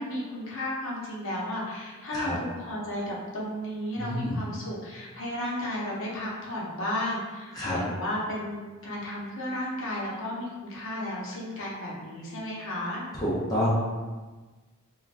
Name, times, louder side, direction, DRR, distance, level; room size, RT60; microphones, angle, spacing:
voice 1, 0.0-13.0, left 1 dB, 65° left, -5 dB, 0.7 m, -33 dB
voice 2, 4.0-4.4 7.5-7.8 13.1-13.7, equal, 15° left, -8 dB, 0.5 m, -28 dB
2.5 x 2.2 x 3.2 m, 1.3 s
head